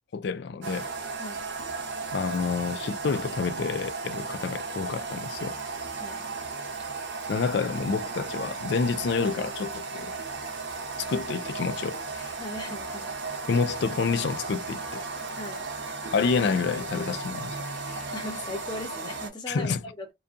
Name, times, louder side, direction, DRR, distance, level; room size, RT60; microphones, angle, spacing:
voice 1, 0.1-0.9 2.1-5.6 7.3-10.1 11.0-12.4 13.5-15.1 16.1-17.6 17.9-18.1 19.5-19.8, left 5 dB, 60° left, 0.3 m, -28 dB
sound 1, 0.6-19.3, right 4 dB, 65° right, 0.6 m, -35 dB
voice 2, 12.4-13.2 15.4-15.7 18.1-20.1, left 1 dB, 20° left, 0.7 m, -38 dB
2.6 x 2.3 x 2.3 m
head